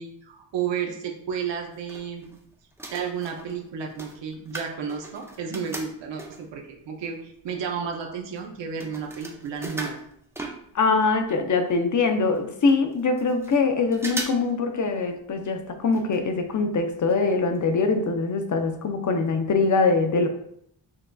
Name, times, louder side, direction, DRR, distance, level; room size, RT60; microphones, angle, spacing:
voice 1, 0.0-2.3 2.9-10.0, right 7 dB, 80° right, 1 dB, 0.8 m, -32 dB
sound 1, 1.5-2.4 2.7-6.6 7.2-7.3 7.5-11.1 11.4-11.5 11.7-11.8 12.3-12.4 12.7-13.6 13.9-14.5 14.8-14.9 15.9-16.2 16.5-16.6 17.1-17.2 17.6-17.7, right 2 dB, 5° right, 0.6 m, -38 dB
voice 2, 10.7-20.3, left 4 dB, 45° left, 6 dB, 0.6 m, -23 dB
6.2 x 2.4 x 2.3 m, 0.71 s
cardioid pair, 75°, 43 cm